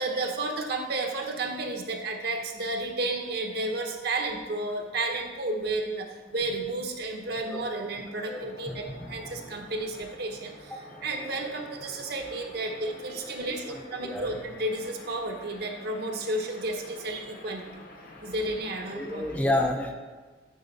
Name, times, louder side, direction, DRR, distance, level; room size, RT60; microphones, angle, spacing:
voice 1, 0.0-6.1 6.3-17.8 18.2-19.3, right 2 dB, 65° right, 3 dB, 0.9 m, -32 dB
sound 1, 6.6-19.4, left 2 dB, 60° left, 1.0 m, -49 dB
voice 2, 8.3-9.4 10.7-10.8 13.4-14.3 18.9-19.9, left 1 dB, 10° left, 2 dB, 0.6 m, -31 dB
8.7 x 4.3 x 4.0 m, 1.4 s
head